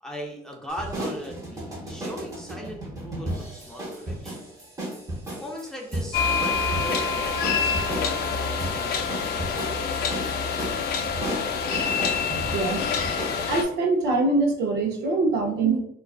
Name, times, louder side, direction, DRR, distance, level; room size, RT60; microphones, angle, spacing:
voice 1, 0.0-4.5 5.4-10.2, equal, 5° left, -1 dB, 0.5 m, -39 dB
sound 1, 0.7-13.4, right 1 dB, 20° right, 0.8 m, -34 dB
sound 2, 6.1-13.6, left 5 dB, 70° left, 0.4 m, -26 dB
voice 2, 12.5-12.9 13.5-15.8, right 3 dB, 80° right, 1 dB, 0.6 m, -23 dB
2.3 x 2.3 x 2.3 m, 0.73 s
cardioid pair, 110°, 17 cm